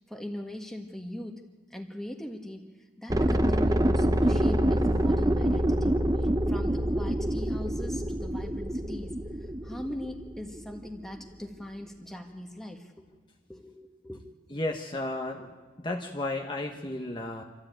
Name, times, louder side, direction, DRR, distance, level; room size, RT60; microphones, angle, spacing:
voice 1, 0.1-1.4 1.7-2.6 3.0-9.1 9.6-13.0 13.5-14.2 14.5-14.6, left 1 dB, ahead, 2 dB, 1.6 m, -40 dB
sound 1, 3.1-10.9 11.2-11.3, right 1 dB, 20° right, 0.7 m, -26 dB
voice 2, 14.5-17.4, left 2 dB, 25° left, 1 dB, 1.2 m, -33 dB
27.0 x 13.5 x 8.9 m, 1.4 s
head